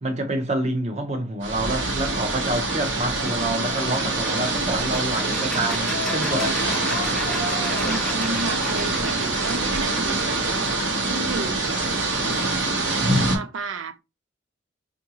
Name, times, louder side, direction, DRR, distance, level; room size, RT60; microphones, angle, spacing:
voice 1, 0.0-6.6, right 1 dB, 35° right, 0.7 m, -27 dB
sound 1, 1.4-13.4, right 2 dB, 65° right, 1.0 m, -25 dB
sound 2, 3.6-12.1, left 3 dB, 50° left, 0.6 m, -37 dB
sound 3, 4.7-10.4, left 1 dB, 5° left, 0.5 m, -36 dB
voice 2, 7.6-11.8 13.3-14.0, right 3 dB, 80° right, 0.5 m, -33 dB
4.7 x 2.5 x 2.8 m
head